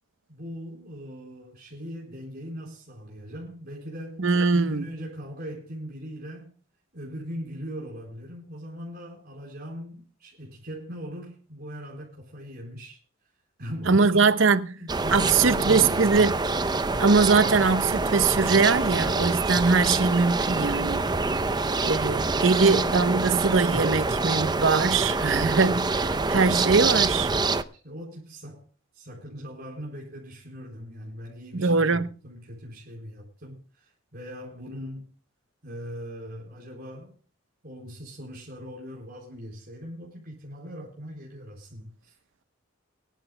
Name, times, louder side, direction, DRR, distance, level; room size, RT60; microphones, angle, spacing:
voice 1, 0.3-6.5 6.9-13.0 13.6-16.3 27.8-28.7 28.9-35.1 35.6-37.1 37.6-42.1, equal, 50° right, 4.4 m, -40 dB
voice 2, 4.2-4.9 13.9-14.7 15.1-16.3 17.0-21.0 21.8-27.3 31.5-32.1, right 4 dB, 65° right, 0.9 m, -22 dB
sound 1, 14.9-27.6, right 3 dB, 20° right, 0.6 m, -26 dB
23.5 x 12.0 x 2.2 m
head